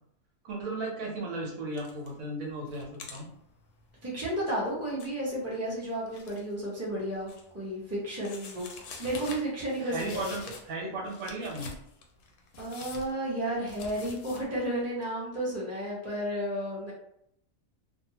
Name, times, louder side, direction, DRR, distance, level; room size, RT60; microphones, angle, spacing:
voice 1, 0.4-3.3 9.8-11.7, right 2 dB, 75° right, -2 dB, 1.2 m, -35 dB
sound 1, 1.7-2.2 2.5-6.5 6.9-7.7 8.2-10.8 11.0-14.5, left 4 dB, 70° left, 0.9 m, -46 dB
voice 2, 4.0-8.7 9.0-10.3 12.6-16.9, right 1 dB, 15° right, -7 dB, 0.9 m, -32 dB
2.7 x 2.2 x 2.8 m, 0.74 s
omnidirectional pair, 1.4 m